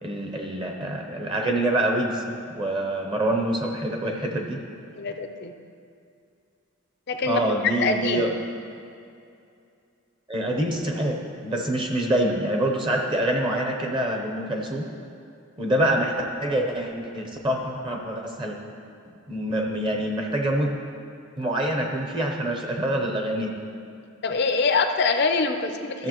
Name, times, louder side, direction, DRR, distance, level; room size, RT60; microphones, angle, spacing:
voice 1, 0.0-4.6 7.3-8.3 10.3-11.2 11.4-14.9 15.6-18.6 19.3-20.7 21.4-23.6 26.0-26.1, right 1 dB, 25° right, 2 dB, 0.7 m, -26 dB
voice 2, 5.0-5.5 7.1-8.3 24.2-26.1, left 4 dB, 50° left, 7 dB, 0.5 m, -24 dB
13.5 x 6.8 x 3.0 m, 2.5 s
head